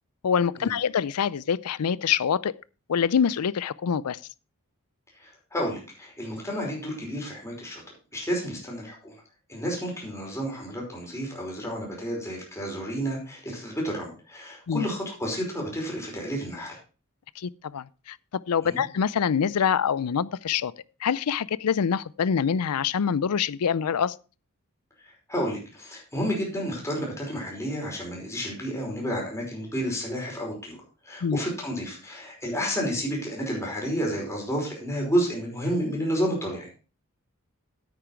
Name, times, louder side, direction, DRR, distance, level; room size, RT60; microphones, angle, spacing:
voice 1, 0.2-2.5 2.9-4.2 14.7-14.9 17.4-18.2 18.5-20.7 21.0-24.1 31.2-31.4, left 7 dB, 80° left, 0.5 m, -25 dB
voice 2, 5.2-7.8 8.1-9.1 9.5-16.8 18.6-18.8 25.3-30.8 31.1-36.7, equal, 15° left, 5.1 m, -31 dB
9.7 x 8.9 x 4.5 m
head